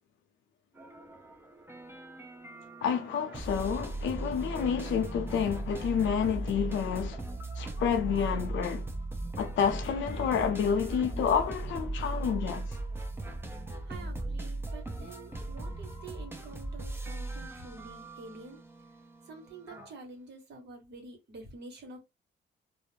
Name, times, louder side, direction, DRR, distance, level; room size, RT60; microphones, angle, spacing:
sound 1, 0.8-19.9, right 2 dB, 10° right, 0.6 m, -38 dB
voice 1, 2.8-7.2 7.6-8.8 9.4-12.8, left 7 dB, 75° left, 0.6 m, -29 dB
voice 2, 13.8-18.6 19.2-22.0, right 3 dB, 60° right, 1.2 m, -48 dB
2.4 x 2.1 x 3.0 m
cardioid pair, 90°, 20 cm